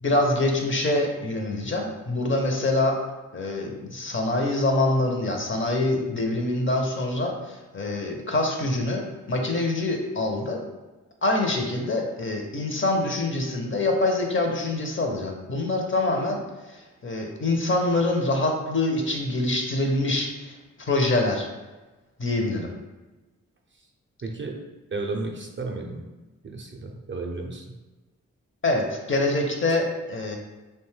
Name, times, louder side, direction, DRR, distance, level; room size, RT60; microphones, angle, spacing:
voice 1, 0.0-3.0 3.3-10.6 11.2-16.4 16.7-21.5 22.2-22.7 28.6-30.4, left 2 dB, 40° left, 2 dB, 0.5 m, -25 dB
voice 2, 24.2-24.6 24.9-26.1 26.4-27.7, right 3 dB, 35° right, 2 dB, 0.4 m, -33 dB
2.6 x 2.2 x 3.2 m, 1.2 s
cardioid pair, 40°, 33 cm